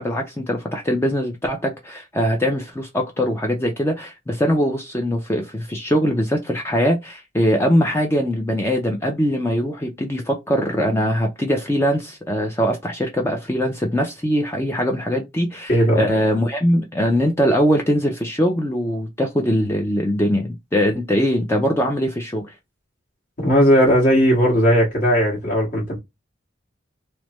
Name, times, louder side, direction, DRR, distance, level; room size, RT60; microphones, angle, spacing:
voice 1, 0.0-22.5, equal, 15° left, 0.4 m, -21 dB
voice 2, 15.7-16.2 23.4-26.0, equal, 50° left, 1.6 m, -17 dB
3.2 x 2.0 x 3.0 m
head